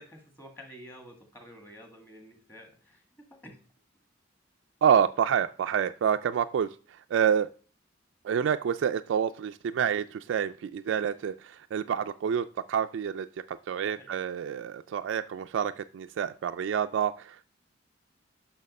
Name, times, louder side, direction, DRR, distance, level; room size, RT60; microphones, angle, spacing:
voice 1, 0.0-3.6 13.8-14.2, equal, 10° left, 4 dB, 1.7 m, -50 dB
voice 2, 4.8-6.7 7.1-7.5 8.2-17.5, right 8 dB, 75° right, 8 dB, 0.3 m, -28 dB
6.4 x 5.9 x 5.2 m, 0.40 s
head